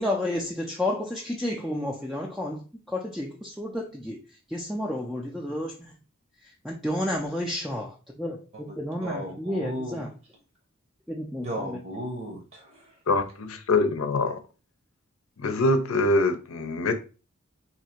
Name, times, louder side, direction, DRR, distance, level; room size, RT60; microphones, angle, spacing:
voice 1, 0.0-4.2 4.5-6.0 6.4-10.1 11.1-11.8, left 1 dB, ahead, 0.4 m, -31 dB
voice 2, 9.0-10.1 11.4-12.9, equal, 45° right, 0.8 m, -35 dB
voice 3, 13.1-14.4 15.4-16.9, left 2 dB, 85° left, 0.6 m, -24 dB
2.8 x 2.6 x 4.3 m
head